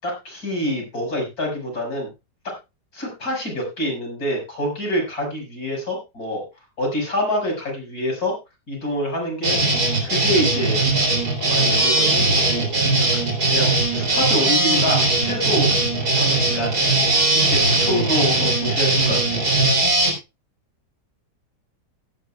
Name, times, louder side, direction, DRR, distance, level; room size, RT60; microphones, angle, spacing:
voice 1, 0.0-2.1 2.4-2.5 2.9-6.4 6.8-8.3 8.7-9.6 10.0-10.9 11.4-12.7 13.0-15.7 16.1-16.7 17.1-19.4, equal, 60° left, 1 dB, 6.1 m, -26 dB
sound 1, 9.4-20.1, right 2 dB, 65° right, 4.0 m, -19 dB
17.0 x 11.5 x 2.3 m, 0.25 s
omnidirectional pair, 1.8 m